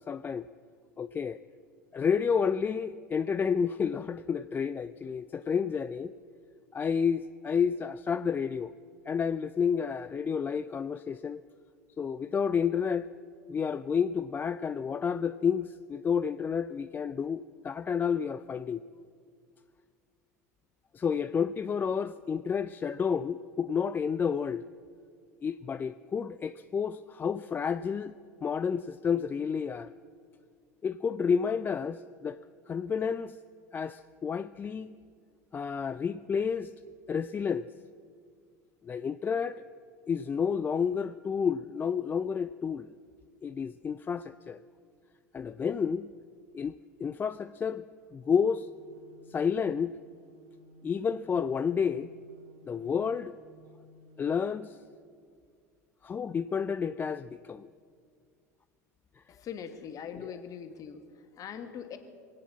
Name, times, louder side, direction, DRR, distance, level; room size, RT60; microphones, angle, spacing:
voice 1, 0.1-0.5 1.0-1.4 1.9-6.1 6.7-8.7 9.1-11.4 12.0-13.1 13.5-18.8 20.9-24.6 25.4-28.1 28.4-29.9 30.8-32.4 32.7-33.4 33.7-34.9 35.5-36.7 37.1-37.7 38.8-39.6 40.1-42.9 43.4-44.6 45.3-46.1 46.5-46.7 47.0-47.8 48.1-48.7 49.3-49.9 50.8-52.1 52.7-53.4 54.2-54.8 56.0-57.7 60.2-60.3, left 6 dB, 20° left, 12 dB, 0.3 m, -30 dB
sound 1, 48.2-54.2, left 1 dB, 65° right, 1.8 m, -57 dB
voice 2, 59.3-62.0, left 7 dB, 40° left, 7 dB, 1.5 m, -42 dB
22.0 x 8.6 x 7.4 m, 2.2 s
figure-of-eight pair, 80°, 9 cm